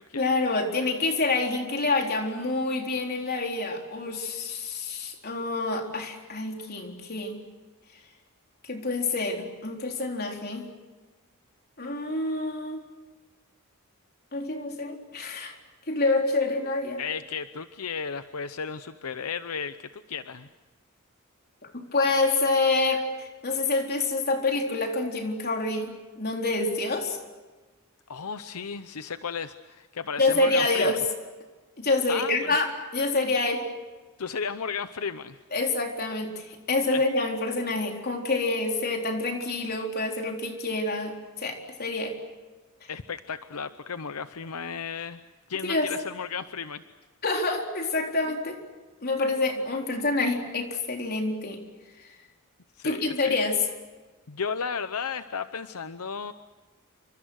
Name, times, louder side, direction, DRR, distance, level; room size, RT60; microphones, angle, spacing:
voice 1, 0.2-7.4 8.6-10.7 11.8-12.8 14.3-15.5 15.9-17.0 21.7-25.9 26.2-27.2 30.2-31.0 31.8-33.6 35.5-42.2 45.6-45.9 47.2-48.6 49.0-51.6 52.8-53.6, left 3 dB, 45° left, 2 dB, 4.0 m, -27 dB
voice 2, 17.0-20.5 28.1-30.9 32.1-32.6 34.2-35.4 36.9-37.0 42.9-45.2 45.5-46.8 52.8-53.4 54.3-56.3, left 6 dB, 80° left, 11 dB, 0.8 m, -34 dB
29.0 x 25.5 x 6.5 m, 1.2 s
head